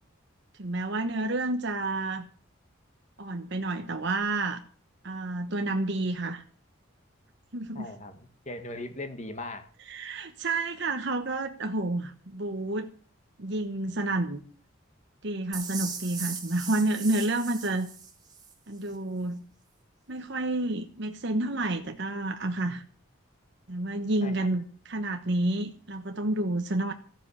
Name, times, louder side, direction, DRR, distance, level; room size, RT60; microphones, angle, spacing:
voice 1, 0.6-2.3 3.2-4.6 5.0-6.4 7.5-7.9 9.9-12.9 13.4-14.4 15.2-17.9 18.7-19.4 20.1-22.8 23.7-26.9, right 2 dB, 55° right, 5 dB, 1.1 m, -30 dB
voice 2, 7.8-9.7 24.2-24.5, left 2 dB, 35° left, 8 dB, 1.8 m, -39 dB
sound 1, 15.5-18.5, right 6 dB, 20° right, 2.3 m, -38 dB
14.5 x 7.6 x 8.5 m, 0.42 s
head